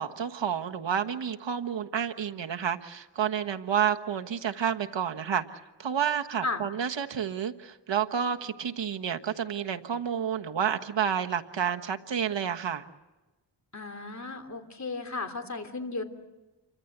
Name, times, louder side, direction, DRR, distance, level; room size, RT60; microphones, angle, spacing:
voice 1, 0.0-12.8, right 8 dB, 70° right, 6 dB, 1.4 m, -30 dB
voice 2, 13.7-16.0, left 3 dB, 35° left, 6 dB, 3.2 m, -34 dB
29.0 x 25.0 x 8.0 m, 1.1 s
wide cardioid pair, 95°, 46 cm